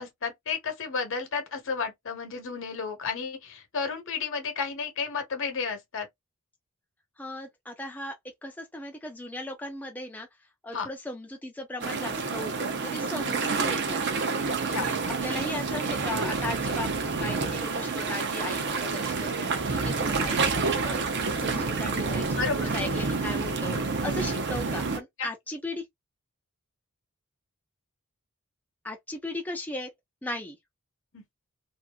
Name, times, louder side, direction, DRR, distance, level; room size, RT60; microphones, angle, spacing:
voice 1, 0.0-6.1 10.7-10.9 14.4-14.9 21.5-21.6 22.4-22.7 25.2-25.3 31.1-31.2, left 5 dB, 60° left, 1.0 m, -32 dB
voice 2, 7.2-8.1 8.4-10.3 10.6-14.0 14.6-25.8 28.8-29.9 30.2-30.6, left 1 dB, 5° left, 0.4 m, -37 dB
sound 1, 11.8-25.0, right 4 dB, 55° right, 0.7 m, -28 dB
2.6 x 2.5 x 2.3 m
head